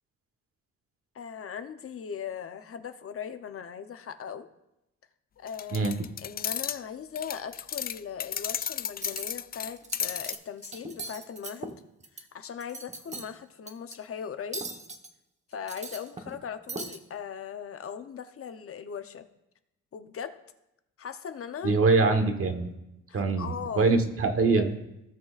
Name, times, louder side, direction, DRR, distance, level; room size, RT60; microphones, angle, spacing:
voice 1, 1.1-4.5 5.4-5.9 6.2-11.7 12.2-14.7 15.5-19.3 19.9-20.4 21.0-21.7 23.1-23.9, left 7 dB, 50° left, 9 dB, 0.8 m, -39 dB
sound 1, 5.5-6.8 7.1-10.3, left 8 dB, 30° left, 0.4 m, -33 dB
voice 2, 5.7-6.1 21.6-22.7 23.1-24.8, right 3 dB, 45° right, 6 dB, 1.3 m, -24 dB
Cutlery silverware, 9.0-9.3 9.8-10.4 10.6-12.2 12.6-13.3 13.7-13.9 14.5-15.1 15.5-16.4 16.7-17.0, right 3 dB, 25° right, 1.1 m, -39 dB
17.0 x 6.1 x 2.5 m, 0.88 s
cardioid pair, 90°, 30 cm